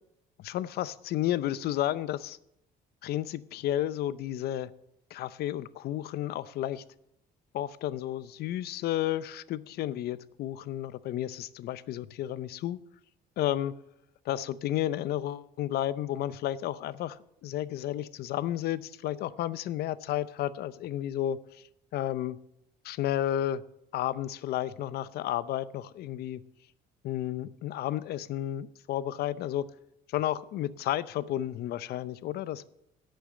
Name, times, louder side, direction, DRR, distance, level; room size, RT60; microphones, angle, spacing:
voice 1, 0.4-2.4 3.0-4.7 5.1-6.8 7.5-12.8 13.4-13.7 14.3-21.4 21.9-22.4 22.8-23.6 23.9-26.4 27.0-29.6 30.1-32.6, left 12 dB, 70° left, 16 dB, 0.6 m, -32 dB
11.0 x 6.9 x 7.6 m, 0.79 s
cardioid pair, 110°, 17 cm